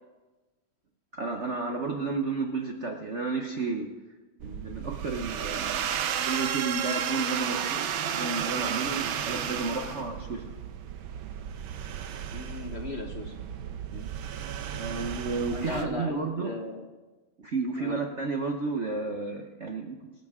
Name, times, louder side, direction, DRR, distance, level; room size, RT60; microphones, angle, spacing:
voice 1, 1.1-3.9 4.4-5.9 6.2-10.6 13.9-14.1 14.7-16.5 17.4-20.0, right 4 dB, 50° right, 3 dB, 0.9 m, -32 dB
sound 1, 4.4-15.8, right 8 dB, 75° right, 1.6 m, -33 dB
voice 2, 12.3-13.4 15.5-16.9 17.8-18.0, left 2 dB, 40° left, 3 dB, 1.1 m, -37 dB
25.5 x 9.9 x 3.7 m, 1.2 s
omnidirectional pair, 2.2 m